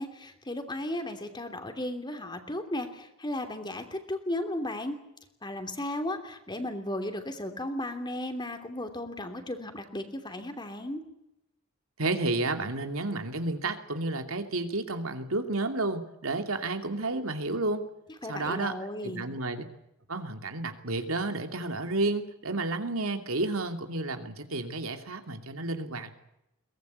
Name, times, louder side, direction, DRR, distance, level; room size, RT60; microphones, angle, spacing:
voice 1, 0.0-5.0 5.4-11.0 18.2-19.3, left 1 dB, 20° left, 7 dB, 3.0 m, -35 dB
voice 2, 12.0-17.8 18.3-18.8 19.0-19.6 20.1-26.1, right 2 dB, 80° right, 6 dB, 2.6 m, -31 dB
22.5 x 19.0 x 8.3 m, 0.85 s
head